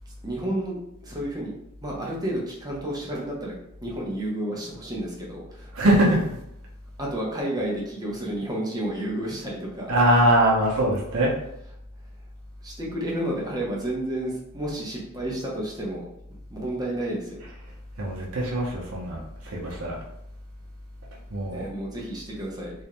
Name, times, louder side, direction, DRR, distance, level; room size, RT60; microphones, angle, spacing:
voice 1, 0.2-1.5 1.8-3.5 3.8-5.7 7.0-9.9 12.6-16.1 16.5-17.4 21.5-22.7, right 1 dB, 20° right, -3 dB, 0.6 m, -31 dB
voice 2, 5.7-6.2 9.9-11.3 17.4-17.5 18.0-19.9 21.3-21.6, right 1 dB, 80° right, -3 dB, 0.6 m, -22 dB
2.4 x 2.1 x 2.9 m, 0.79 s
head